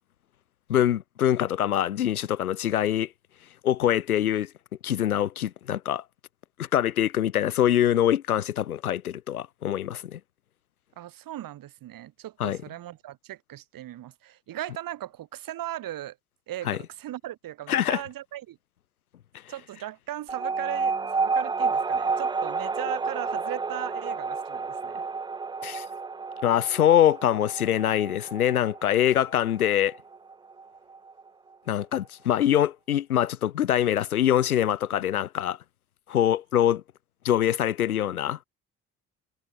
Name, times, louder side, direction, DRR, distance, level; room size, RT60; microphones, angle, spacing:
voice 1, 0.7-3.1 3.6-4.5 4.8-6.0 6.6-10.2 12.4-12.6 16.6-16.8 17.7-18.0 25.6-25.9 26.4-30.0 31.7-35.6 36.1-36.8 37.2-38.4, left 11 dB, 85° left, 0.6 m, -24 dB
voice 2, 11.0-16.2 16.5-18.6 19.5-25.0, right 13 dB, 50° right, 1.8 m, -38 dB
sound 1, 20.3-31.2, right 4 dB, 10° right, 0.5 m, -30 dB
figure-of-eight pair, 45°, 42 cm